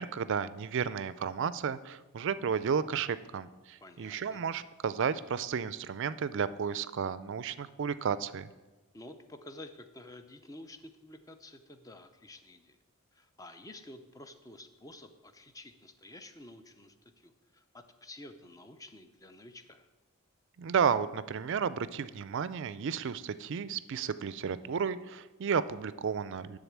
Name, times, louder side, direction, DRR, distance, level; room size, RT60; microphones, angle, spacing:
voice 1, 0.0-8.5 20.6-26.6, right 6 dB, 55° right, 15 dB, 0.4 m, -32 dB
voice 2, 3.8-4.4 8.9-12.8 13.1-19.9, left 1 dB, 15° left, 8 dB, 0.5 m, -50 dB
10.5 x 3.8 x 7.3 m, 1.2 s
head